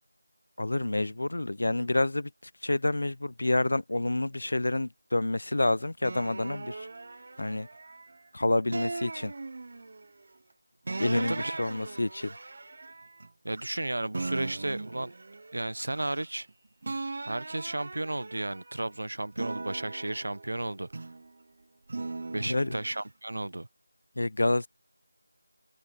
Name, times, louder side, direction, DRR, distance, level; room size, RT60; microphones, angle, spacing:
voice 1, 0.6-2.3 2.6-6.9 7.4-7.7 8.3-9.3 11.0-12.3 22.5-22.7 24.2-24.7, left 2 dB, 65° left, 0.6 m, -28 dB
sound 1, 6.0-8.2 8.7-10.1 10.9-13.8 14.1-16.5 16.8-18.8 19.3-21.3 21.9-23.0, right 3 dB, 40° right, 0.7 m, -39 dB
voice 2, 11.1-11.6 13.4-15.1 15.5-16.5 17.2-21.1 22.3-23.7, right 1 dB, 75° right, 1.1 m, -34 dB
figure-of-eight pair, 175°, 0 cm